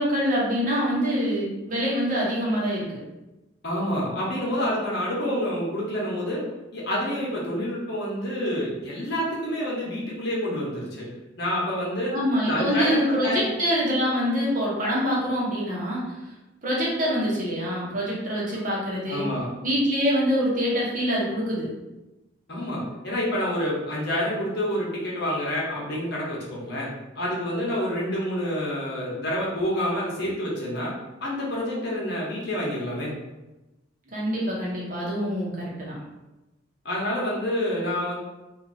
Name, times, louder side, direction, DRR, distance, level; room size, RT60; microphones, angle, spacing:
voice 1, 0.0-3.0 12.1-16.1 16.6-19.3 19.6-21.7 34.1-35.9, equal, 45° right, -5 dB, 1.1 m, -25 dB
voice 2, 3.6-6.4 6.7-11.1 11.4-12.1 12.5-13.4 19.1-19.5 22.5-26.9 27.2-33.2 36.8-38.2, equal, 60° left, -5 dB, 1.1 m, -28 dB
2.8 x 2.6 x 4.0 m, 1.0 s
head